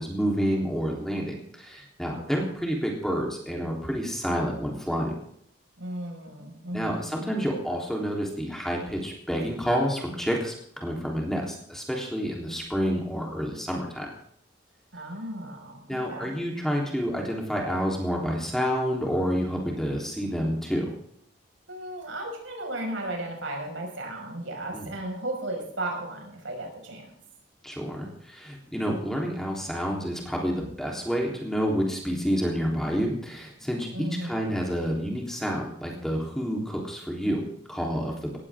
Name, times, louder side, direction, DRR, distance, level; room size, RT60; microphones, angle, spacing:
voice 1, 0.0-5.1 6.7-14.1 15.9-20.9 24.7-24.9 27.6-38.4, equal, ahead, -1 dB, 3.5 m, -29 dB
voice 2, 2.1-2.5 5.8-7.3 14.9-16.4 21.7-27.1 33.9-34.5, right 1 dB, 90° right, 1 dB, 5.7 m, -35 dB
18.0 x 15.5 x 3.7 m, 0.67 s
head